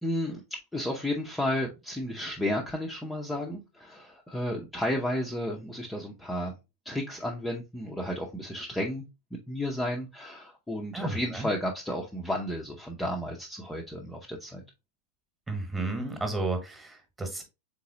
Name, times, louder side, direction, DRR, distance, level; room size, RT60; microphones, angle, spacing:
voice 1, 0.0-6.6 6.8-9.0 9.3-14.6, left 1 dB, 5° left, -1 dB, 0.7 m, -32 dB
voice 2, 10.9-11.5 15.5-17.4, right 2 dB, 10° right, 5 dB, 1.3 m, -32 dB
3.9 x 3.8 x 2.8 m, 0.25 s
figure-of-eight pair, 90°, 0 cm